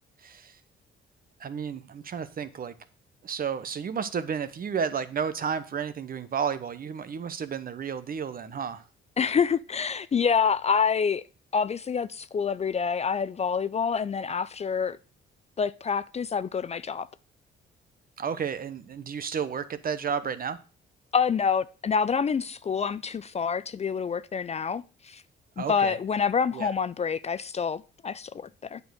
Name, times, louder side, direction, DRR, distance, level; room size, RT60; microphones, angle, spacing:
voice 1, 0.2-0.6 1.4-2.7 3.2-8.8 18.2-20.6 25.6-26.0 26.5-26.7, right 7 dB, 45° right, 1.0 m, -32 dB
voice 2, 9.2-11.2 11.5-15.0 15.6-17.1 21.1-25.2 25.6-28.8, left 6 dB, 35° left, 0.4 m, -27 dB
8.8 x 5.4 x 6.4 m
cardioid pair, 90°, 20 cm